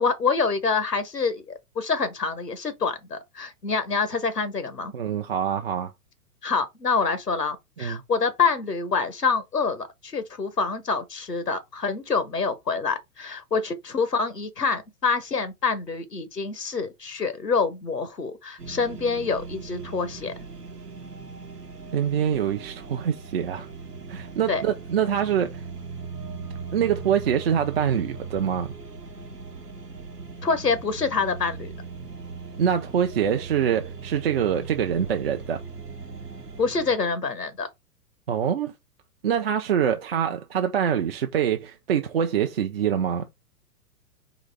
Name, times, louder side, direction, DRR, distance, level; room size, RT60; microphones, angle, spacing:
voice 1, 0.0-4.9 6.4-20.3 24.5-24.6 30.4-31.7 36.6-37.7, left 5 dB, 90° left, 0.9 m, -26 dB
voice 2, 4.9-5.9 7.8-8.0 21.9-23.7 24.1-25.6 26.7-28.7 32.6-35.6 38.3-38.7 39.2-43.3, right 8 dB, 40° right, 0.5 m, -25 dB
sound 1, 18.6-36.9, right 4 dB, 85° right, 1.0 m, -39 dB
4.0 x 3.0 x 3.3 m
figure-of-eight pair, 110°, 47 cm